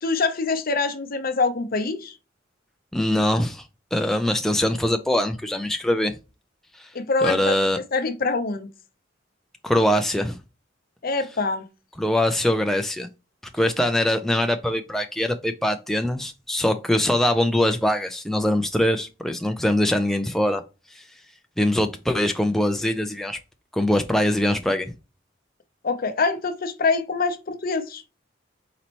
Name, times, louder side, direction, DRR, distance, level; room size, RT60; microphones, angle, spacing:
voice 1, 0.0-2.1 6.9-7.6 7.9-8.7 11.0-11.6 25.8-28.0, left 4 dB, 50° left, 0.7 m, -24 dB
voice 2, 2.9-3.7 3.9-6.2 6.8-6.9 7.2-7.8 9.6-10.4 12.0-13.1 13.5-20.6 20.9-21.0 21.6-23.4 23.7-24.9, left 1 dB, ahead, 0.4 m, -22 dB
4.3 x 4.0 x 2.9 m
head